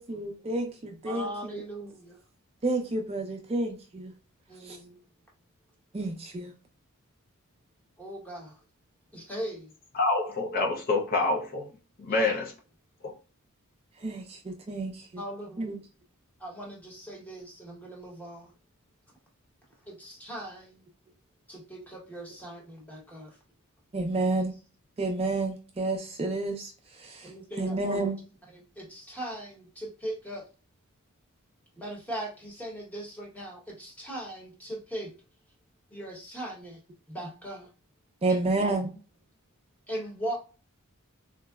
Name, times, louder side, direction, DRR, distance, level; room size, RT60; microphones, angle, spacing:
voice 1, 0.0-0.7 1.0-1.6 2.6-4.1 5.9-6.5 14.0-15.2 15.6-15.8 23.9-24.5 25.0-26.7 27.6-28.2 38.2-38.9, right 2 dB, 25° right, 0.4 m, -29 dB
voice 2, 1.1-2.2 4.5-5.0 8.0-8.6 9.1-9.7 12.1-12.3 15.2-15.7 16.4-18.5 19.9-20.8 21.5-23.3 27.2-28.1 28.4-30.4 31.8-35.1 35.9-36.8 37.1-37.7 38.3-38.5 38.9-39.0 39.9-40.4, right 1 dB, 5° left, 0.9 m, -39 dB
voice 3, 9.9-11.7 12.0-12.5 13.0-13.1, left 3 dB, 45° left, 0.5 m, -27 dB
3.6 x 2.0 x 2.3 m
head